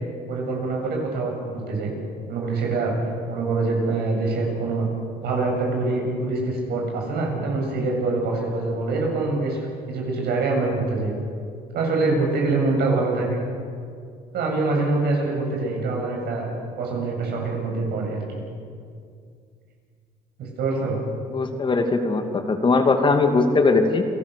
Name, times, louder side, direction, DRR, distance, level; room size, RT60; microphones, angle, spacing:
voice 1, 0.3-1.9 2.3-2.9 3.3-4.9 5.2-9.6 9.9-11.2 11.7-13.4 14.3-16.5 16.8-18.4 20.4-21.0, right 3 dB, 70° right, 0 dB, 7.7 m, -24 dB
voice 2, 21.3-24.0, left 3 dB, 30° left, 5 dB, 2.4 m, -20 dB
29.0 x 18.0 x 6.9 m, 2.3 s
cardioid pair, 110°, 17 cm